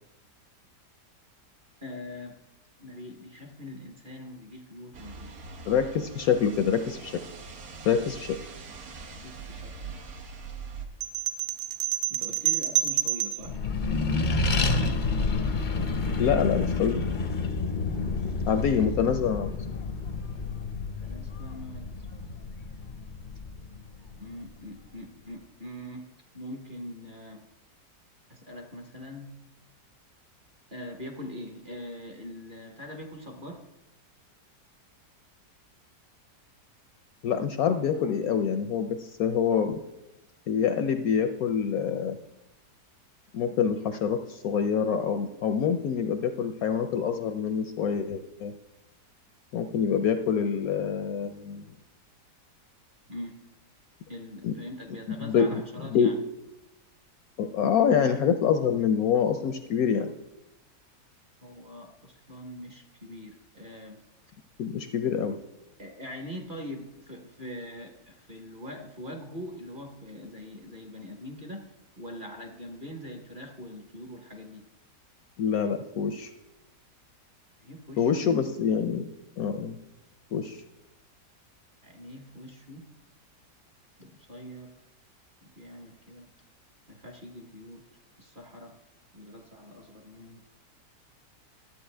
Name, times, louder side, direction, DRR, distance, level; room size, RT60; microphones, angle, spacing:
voice 1, 1.8-2.4 2.8-5.4 8.9-9.0 9.2-10.0 12.1-13.6 21.0-22.1 24.2-26.1 26.3-27.5 28.3-29.4 30.7-33.6 37.9-38.1 53.1-53.5 54.1-56.2 61.4-64.0 65.8-71.7 72.0-74.6 77.6-78.2 81.8-82.9 84.0-84.7 85.4-86.3 86.9-87.9 88.2-88.8 89.1-90.4, left 1 dB, 35° right, 3 dB, 1.0 m, -43 dB
sound 1, 4.9-10.9, right 5 dB, 70° right, 1.5 m, -42 dB
voice 2, 5.7-7.2 7.8-8.4 16.2-17.0 18.5-19.5 37.2-39.8 40.5-42.2 43.3-48.5 49.5-51.6 54.4-54.5 55.2-55.6 55.9-56.1 57.4-60.1 64.6-65.4 75.4-76.3 78.0-79.1 79.4-79.8 80.3-80.6, left 7 dB, 70° left, 7 dB, 0.9 m, -26 dB
sound 2, 11.0-13.5, right 12 dB, 90° right, 0.6 m, -28 dB
Accelerating revving vroom, 13.4-24.3, left 3 dB, 55° left, 0.5 m, -29 dB
12.5 x 8.2 x 3.3 m, 0.93 s
omnidirectional pair, 1.8 m